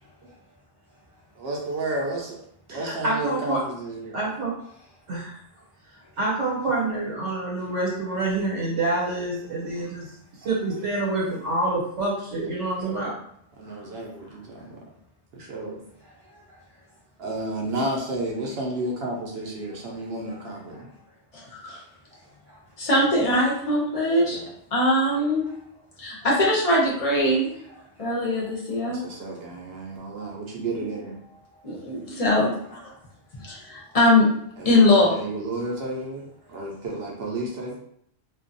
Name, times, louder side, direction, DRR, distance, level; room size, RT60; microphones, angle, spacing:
voice 1, 1.4-2.4 2.7-4.2 12.8-12.9 13.6-14.8 15.3-15.8 17.2-20.9 24.3-24.4 28.8-31.1 34.6-37.8, right 2 dB, 65° right, -1 dB, 0.8 m, -32 dB
voice 2, 2.7-3.6 4.1-4.5 5.1-5.4 6.2-10.1 10.4-13.1, right 2 dB, 80° right, -6 dB, 1.2 m, -27 dB
voice 3, 9.5-9.9 10.3-10.5 13.6-14.7 16.0-17.0 19.6-21.1 22.1-22.9 25.4-25.6 27.6-29.2 31.5-32.0 33.3-34.0 36.4-36.6, equal, 20° right, -6 dB, 0.7 m, -55 dB
voice 4, 21.3-21.8 22.8-24.4 24.7-25.5 26.0-27.5 28.0-29.0 31.6-32.8 33.4-34.3 34.6-35.2, left 1 dB, 40° left, -4 dB, 0.5 m, -21 dB
2.5 x 2.2 x 2.5 m, 0.69 s
omnidirectional pair, 1.2 m